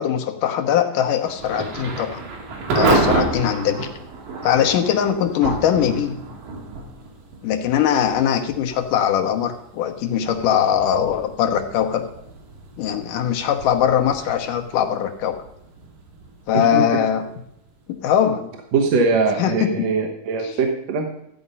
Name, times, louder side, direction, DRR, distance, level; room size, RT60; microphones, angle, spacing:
voice 1, 0.0-2.2 2.7-3.9 4.4-6.2 7.4-12.0 12.8-15.4 16.5-17.2 17.9-18.5 19.4-19.9 20.4-20.5, left 9 dB, 75° left, 5 dB, 2.6 m, -21 dB
Thunder / Rain, 1.2-18.0, right 3 dB, 80° right, 3.9 m, -29 dB
voice 2, 18.7-21.1, right 4 dB, 60° right, 1 dB, 2.1 m, -21 dB
14.0 x 8.6 x 5.5 m, 0.76 s
omnidirectional pair, 3.9 m